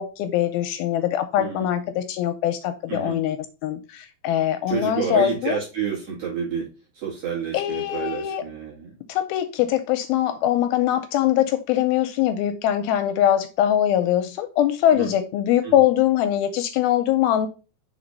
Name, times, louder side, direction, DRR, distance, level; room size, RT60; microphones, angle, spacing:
voice 1, 0.0-3.4 3.6-5.6 7.5-8.4 9.1-17.5, left 11 dB, 80° left, 2.3 m, -22 dB
voice 2, 4.7-6.7 6.9-9.0 14.9-15.1 15.6-15.7, right 7 dB, 45° right, 2.7 m, -29 dB
6.0 x 4.2 x 5.2 m
omnidirectional pair, 4.5 m